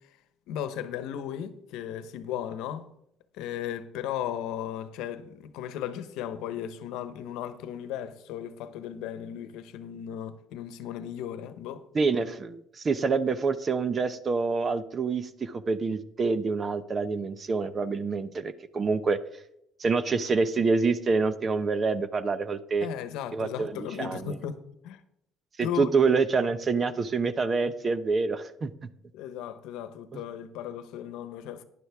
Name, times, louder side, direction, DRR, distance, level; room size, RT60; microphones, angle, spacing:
voice 1, 0.5-2.9 3.3-11.8 22.8-25.0 25.6-25.9 29.1-31.6, left 10 dB, 85° left, 0.9 m, -36 dB
voice 2, 11.9-19.2 19.8-22.9 23.3-24.3 25.6-28.7 30.1-30.2, right 4 dB, 30° right, 0.7 m, -27 dB
11.5 x 10.0 x 3.6 m
cardioid pair, 125°, 0 cm